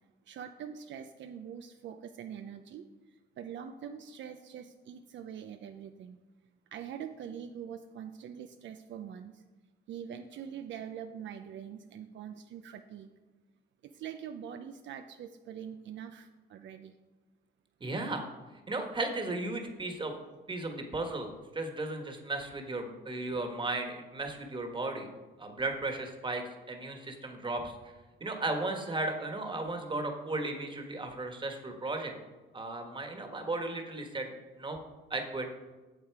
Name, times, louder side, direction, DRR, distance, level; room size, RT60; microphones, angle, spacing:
voice 1, 0.3-2.8 3.4-6.2 6.7-9.4 9.9-13.1 13.8-16.9, right 8 dB, 70° right, 7 dB, 0.6 m, -44 dB
voice 2, 17.8-18.2 18.7-20.1 20.5-25.1 25.4-27.7 28.2-32.1 32.5-34.3 34.6-34.8 35.1-35.5, right 2 dB, 25° right, 4 dB, 1.5 m, -35 dB
8.3 x 7.2 x 4.7 m, 1.2 s
cardioid pair, 90°, 20 cm